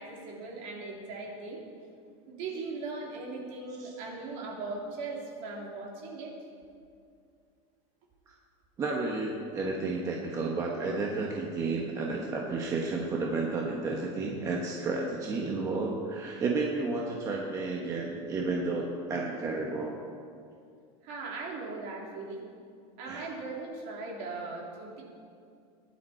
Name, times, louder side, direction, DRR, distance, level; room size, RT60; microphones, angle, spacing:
voice 1, 0.0-1.6 2.3-6.3 21.0-22.4 23.0-25.0, right 3 dB, 50° right, -2 dB, 3.2 m, -39 dB
voice 2, 8.8-20.0 23.1-23.3, right 3 dB, 20° right, -1 dB, 1.1 m, -32 dB
20.5 x 10.5 x 4.4 m, 2.3 s
supercardioid pair, 170°, 16 cm